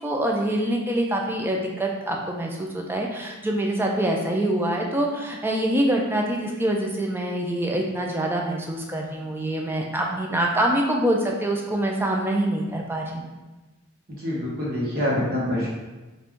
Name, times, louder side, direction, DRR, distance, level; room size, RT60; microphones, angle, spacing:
voice 1, 0.0-13.3, right 1 dB, 10° right, 0 dB, 0.4 m, -25 dB
voice 2, 14.1-15.7, left 1 dB, 45° right, -5 dB, 1.1 m, -26 dB
4.2 x 2.5 x 3.5 m, 1.2 s
head